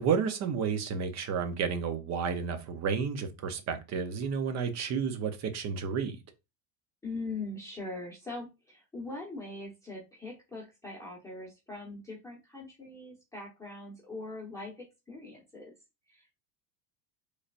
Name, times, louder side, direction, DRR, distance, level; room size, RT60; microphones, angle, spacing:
voice 1, 0.0-6.2, right 6 dB, 35° right, 0.7 m, -31 dB
voice 2, 7.0-15.7 16.1-16.3, left 2 dB, 5° left, 1.0 m, -41 dB
3.9 x 3.3 x 2.5 m
supercardioid pair, 130°, 47 cm